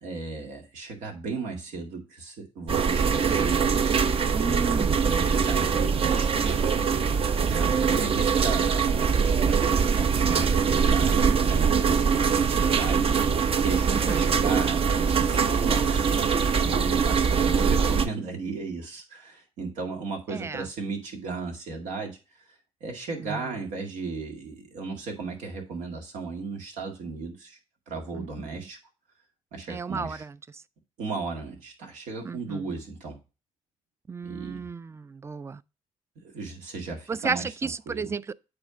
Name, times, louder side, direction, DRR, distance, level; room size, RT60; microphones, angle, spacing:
voice 1, 0.0-3.6 4.4-6.6 7.4-16.1 16.6-22.2 22.8-27.6 27.9-28.8 29.5-30.2 31.0-33.2 34.2-34.7 36.2-38.1, right 4 dB, 90° right, 2.2 m, -35 dB
sound 1, 2.7-18.1, right 6 dB, 50° right, 0.7 m, -23 dB
voice 2, 4.3-5.0 5.6-6.2 7.6-8.1 13.9-14.2 20.3-20.7 23.2-23.5 28.1-28.7 29.7-30.6 32.2-32.7 34.1-35.6 37.1-38.3, right 5 dB, 20° right, 0.4 m, -34 dB
8.8 x 3.5 x 5.0 m
cardioid pair, 85°, 12 cm